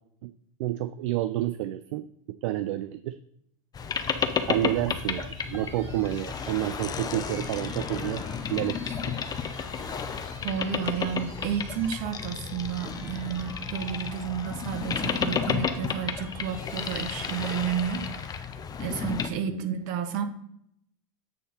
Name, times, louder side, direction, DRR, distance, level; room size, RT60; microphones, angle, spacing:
voice 1, 0.6-2.1 2.4-3.1 4.5-8.2 8.5-9.1 19.5-19.6, right 14 dB, 70° right, 13 dB, 0.4 m, -29 dB
Boat Water vehicle, 3.7-19.3, left 7 dB, 20° left, 0.7 m, -32 dB
sound 1, 3.8-18.4, right 1 dB, 15° right, 2.7 m, -49 dB
voice 2, 10.4-18.4 18.8-20.2, right 8 dB, 50° right, 9 dB, 1.3 m, -31 dB
8.3 x 4.0 x 5.6 m, 0.73 s
supercardioid pair, 115°, 17 cm